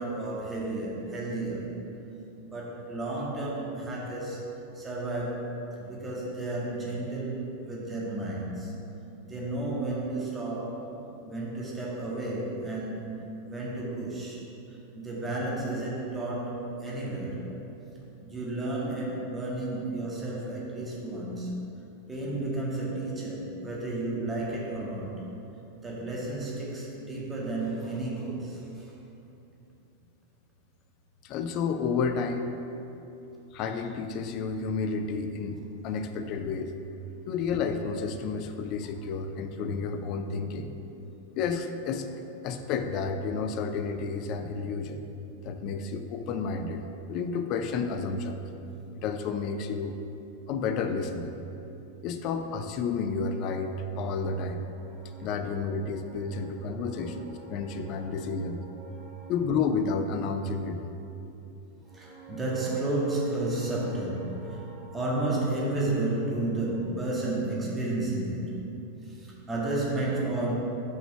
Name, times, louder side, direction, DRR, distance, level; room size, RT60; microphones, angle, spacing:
voice 1, 0.0-1.7 2.4-4.4 4.7-5.5 5.8-8.8 9.2-10.9 11.3-14.4 14.7-17.5 18.2-25.2 25.8-28.9 54.8-55.5 56.0-59.3 61.8-68.7 69.0-70.5, right 2 dB, 15° right, -5 dB, 1.8 m, -33 dB
voice 2, 31.2-32.5 33.5-36.7 37.3-40.7 41.4-42.1 42.4-45.0 45.4-46.8 47.1-48.4 49.0-49.9 50.5-51.3 52.0-54.6 55.2-58.6 59.3-60.8, left 4 dB, 40° left, 7 dB, 0.6 m, -31 dB
6.3 x 5.2 x 6.9 m, 2.9 s
figure-of-eight pair, 90°, 0 cm